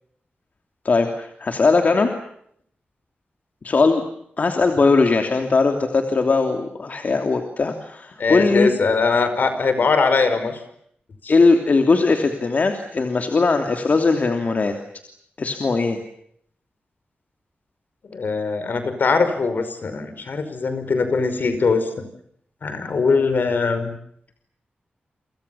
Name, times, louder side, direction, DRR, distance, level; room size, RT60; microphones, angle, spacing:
voice 1, 0.8-2.1 3.6-4.0 4.4-8.7 11.3-14.7 15.4-16.0, left 3 dB, 50° left, 5 dB, 2.9 m, -19 dB
voice 2, 8.2-10.6 11.2-11.3 18.1-21.8 22.6-23.9, left 4 dB, 65° left, 10 dB, 5.2 m, -21 dB
29.0 x 26.5 x 7.1 m, 0.69 s
wide cardioid pair, 165°, 3 cm